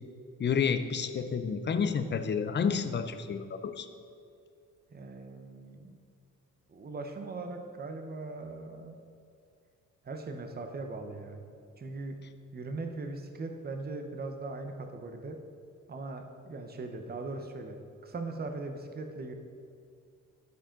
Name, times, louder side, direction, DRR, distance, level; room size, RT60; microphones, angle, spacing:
voice 1, 0.4-3.9, left 6 dB, 35° left, 10 dB, 0.6 m, -30 dB
voice 2, 4.9-5.9 6.7-9.0 10.0-11.4 11.8-12.2 12.5-15.4 15.9-19.3, right 3 dB, 30° right, 5 dB, 0.9 m, -40 dB
13.0 x 5.0 x 3.8 m, 2.4 s
cardioid pair, 90°, 30 cm